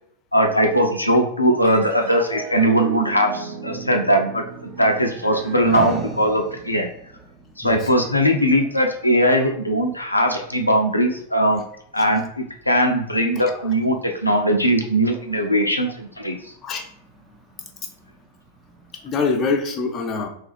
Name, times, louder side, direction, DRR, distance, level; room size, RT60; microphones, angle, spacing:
voice 1, 0.3-6.9 7.6-11.6 11.9-16.5, equal, 85° left, 3 dB, 0.4 m, -20 dB
sound 1, 1.6-8.3, right 4 dB, 65° right, 0.5 m, -37 dB
sound 2, 4.4-19.7, right 2 dB, 15° right, 0.7 m, -40 dB
voice 2, 13.4-13.7 16.6-16.9 18.9-20.3, left 4 dB, 30° left, 3 dB, 0.5 m, -25 dB
3.1 x 2.3 x 3.2 m, 0.70 s
figure-of-eight pair, 90°, 0 cm